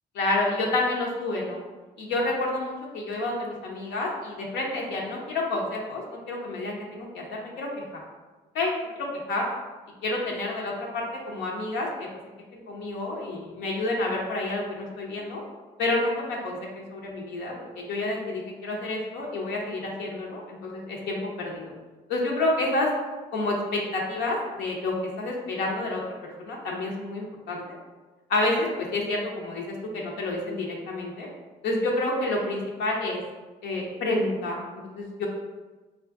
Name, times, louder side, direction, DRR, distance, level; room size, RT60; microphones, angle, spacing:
voice 1, 0.2-1.6 2.0-7.8 8.5-8.8 9.3-9.4 10.0-12.1 12.5-15.4 15.8-21.7 22.1-22.9 23.3-26.0 26.4-27.6 28.3-31.3 31.6-33.2 33.6-34.6 34.9-35.3, left 2 dB, 90° left, -2 dB, 0.6 m, -29 dB
3.4 x 2.5 x 2.4 m, 1.2 s
supercardioid pair, 65°, 18 cm